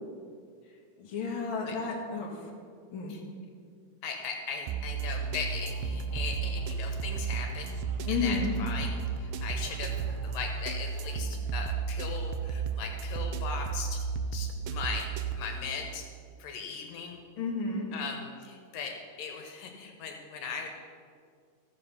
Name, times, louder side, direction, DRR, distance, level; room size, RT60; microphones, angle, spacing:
voice 1, 1.0-2.5 2.9-3.1 8.1-8.5 17.4-17.9, left 4 dB, 45° left, -2 dB, 2.3 m, -32 dB
voice 2, 4.0-7.7 8.1-14.0 14.3-16.1 16.4-17.2 17.9-20.7, left 5 dB, 80° left, 3 dB, 2.8 m, -38 dB
sound 1, 4.7-15.3, right 5 dB, 80° right, 2.3 m, -33 dB
sound 2, 5.0-10.5, equal, 30° right, 3.1 m, -48 dB
15.0 x 7.6 x 5.6 m, 2.1 s
omnidirectional pair, 3.9 m